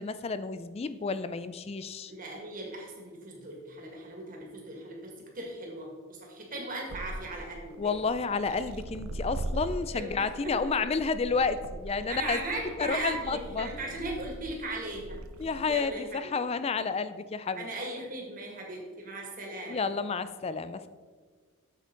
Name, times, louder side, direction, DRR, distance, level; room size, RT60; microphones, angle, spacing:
voice 1, 0.0-2.1 7.8-12.4 12.8-13.7 15.4-17.7 19.7-20.9, left 4 dB, 30° left, 13 dB, 0.3 m, -30 dB
voice 2, 2.1-7.9 9.9-10.5 12.1-15.2 15.6-16.3 17.6-19.9, right 2 dB, 40° right, 0 dB, 1.9 m, -38 dB
sound 1, 6.9-15.8, right 1 dB, 75° right, 0.6 m, -41 dB
8.2 x 7.4 x 3.9 m, 1.5 s
head